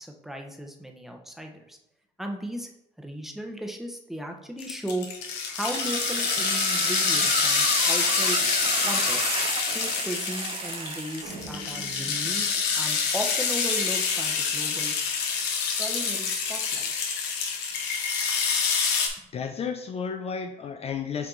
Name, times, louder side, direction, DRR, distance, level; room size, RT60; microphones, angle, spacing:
voice 1, 0.0-1.8 2.2-2.7 3.0-5.1 5.5-8.4 8.8-12.5 12.8-14.9 15.8-16.9, right 1 dB, ahead, 2 dB, 0.9 m, -36 dB
sound 1, 4.6-19.1, left 6 dB, 85° left, 1.1 m, -27 dB
sound 2, 5.6-11.5, right 7 dB, 35° right, 0.3 m, -33 dB
sound 3, 11.2-13.7, right 2 dB, 70° right, 1.5 m, -44 dB
voice 2, 19.3-21.3, left 6 dB, 35° left, 5 dB, 0.4 m, -32 dB
7.2 x 3.6 x 3.8 m, 0.83 s
cardioid pair, 110°, 17 cm